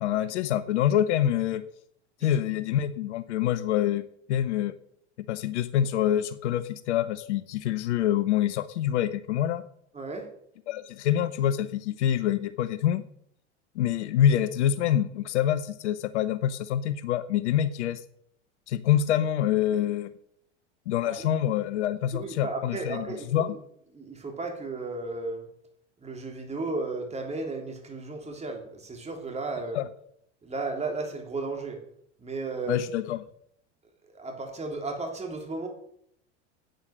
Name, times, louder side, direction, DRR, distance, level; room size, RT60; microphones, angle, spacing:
voice 1, 0.0-1.6 2.2-4.7 5.2-9.6 10.7-13.0 13.8-18.0 18.7-20.1 20.9-23.1 23.3-23.6 29.7-29.9 32.7-33.2, left 10 dB, 70° left, 15 dB, 0.9 m, -26 dB
voice 2, 9.9-10.3 21.0-21.1 22.1-23.6 23.9-25.5 26.0-29.8 30.4-31.8 32.2-32.9 34.1-35.7, right 3 dB, 20° right, 2 dB, 3.4 m, -34 dB
10.5 x 9.1 x 6.5 m, 0.69 s
hypercardioid pair, 85°, 37 cm